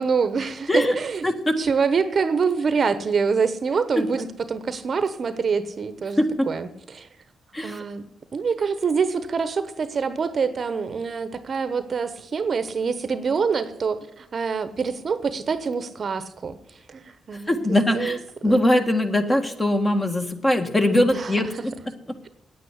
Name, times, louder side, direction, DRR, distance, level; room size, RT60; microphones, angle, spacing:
voice 1, 0.0-1.2 1.6-7.1 7.6-8.1 8.3-16.6 16.9-18.2 18.4-18.6 21.0-21.6, right 5 dB, 45° right, 12 dB, 1.0 m, -26 dB
voice 2, 1.2-1.6 6.2-6.5 7.5-7.8 17.5-21.7, left 1 dB, 20° left, 5 dB, 1.7 m, -21 dB
9.3 x 9.0 x 9.7 m, 0.91 s
cardioid pair, 105°, 0 cm